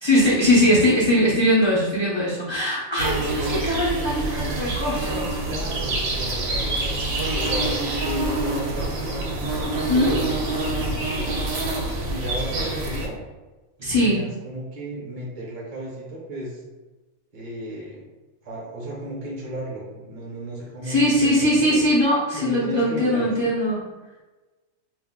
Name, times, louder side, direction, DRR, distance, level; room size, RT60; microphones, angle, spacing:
voice 1, 0.0-5.3 9.9-10.1 13.8-14.2 20.8-23.8, left 1 dB, 50° left, -8 dB, 0.3 m, -20 dB
sound 1, 3.0-13.1, right 2 dB, 70° right, 0.9 m, -26 dB
voice 2, 5.4-7.0 7.3-7.7 8.0-9.4 9.8-11.5 12.1-13.1 13.8-16.6 17.3-18.0 18.4-21.9 22.4-23.5, right 1 dB, 40° right, -3 dB, 0.7 m, -34 dB
2.4 x 2.1 x 3.5 m, 1.2 s
omnidirectional pair, 1.4 m